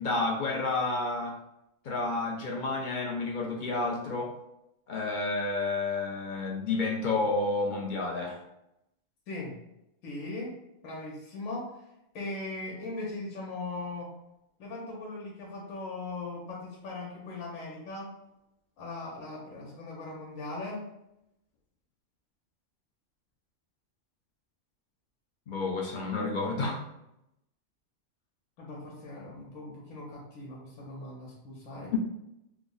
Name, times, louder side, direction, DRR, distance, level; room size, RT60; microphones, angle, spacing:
voice 1, 0.0-1.4 1.8-4.3 4.9-8.4 25.5-26.8 31.9-32.0, left 3 dB, 60° left, -1 dB, 0.5 m, -30 dB
voice 2, 10.0-10.5 10.8-11.6 12.1-14.1 14.6-18.1 18.8-20.8 28.6-32.0, left 2 dB, 85° left, -4 dB, 1.2 m, -39 dB
3.3 x 2.0 x 3.7 m, 0.85 s
omnidirectional pair, 1.3 m